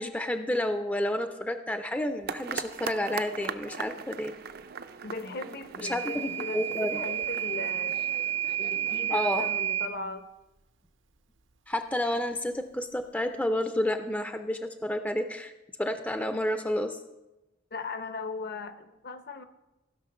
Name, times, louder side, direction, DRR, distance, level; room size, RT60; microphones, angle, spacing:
voice 1, 0.0-4.3 5.8-7.0 9.1-9.4 11.7-15.5 15.8-17.0, left 1 dB, 10° left, 8 dB, 0.4 m, -30 dB
sound 1, 2.3-9.5, right 6 dB, 55° right, 0.5 m, -40 dB
voice 2, 5.0-8.0 8.6-10.2 17.7-19.4, left 3 dB, 55° left, 10 dB, 0.7 m, -38 dB
Microwave oven / Alarm, 5.9-10.0, right 10 dB, 80° right, 0.8 m, -31 dB
15.5 x 5.9 x 5.5 m, 1.0 s
head